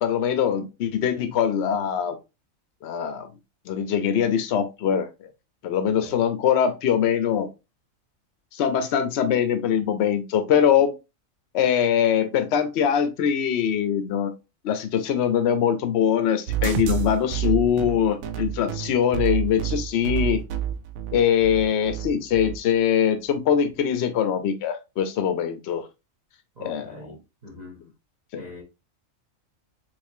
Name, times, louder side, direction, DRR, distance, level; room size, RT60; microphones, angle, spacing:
voice 1, 0.0-2.2 2.8-3.3 3.7-5.1 5.6-7.5 8.5-10.9 11.5-14.3 14.6-20.4 21.1-25.9 26.6-27.0 27.8-27.9 28.3-28.5, left 8 dB, 60° left, 0.9 m, -22 dB
voice 2, 5.9-6.2 26.6-27.8 28.3-28.6, left 1 dB, 35° right, 1.0 m, -43 dB
sound 1, 16.5-22.6, right 10 dB, 85° right, 1.0 m, -28 dB
3.5 x 3.2 x 2.7 m
omnidirectional pair, 1.4 m